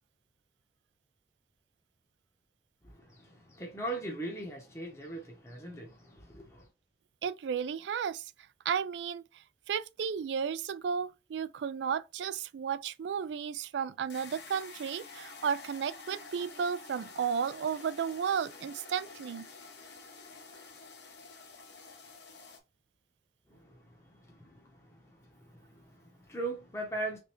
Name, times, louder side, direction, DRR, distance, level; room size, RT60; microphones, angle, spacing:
voice 1, 2.8-6.7 23.5-27.2, right 2 dB, 15° left, 0.7 m, -41 dB
voice 2, 7.2-8.3 8.7-19.5, right 7 dB, 85° right, 0.3 m, -33 dB
sound 1, 14.1-22.6, left 4 dB, 80° left, 1.0 m, -49 dB
3.4 x 3.4 x 2.9 m
head